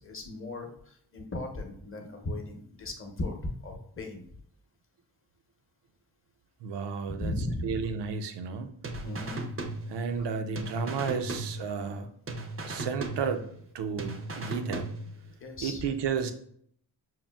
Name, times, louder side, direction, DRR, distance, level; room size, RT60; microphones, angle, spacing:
voice 1, 0.0-3.4 3.6-4.3 7.1-7.8 9.0-9.4 10.2-10.3 15.4-15.8, left 1 dB, 30° left, 3 dB, 0.7 m, -37 dB
voice 2, 6.6-7.4 7.6-8.7 9.9-12.1 12.6-13.5 13.7-14.9 15.6-16.3, right 6 dB, 85° right, 8 dB, 0.5 m, -32 dB
sound 1, 8.8-10.3 10.6-12.0 12.3-13.7 14.0-15.3, right 2 dB, 35° right, 0.5 m, -37 dB
5.7 x 2.5 x 2.3 m, 0.65 s
cardioid pair, 100°, 41 cm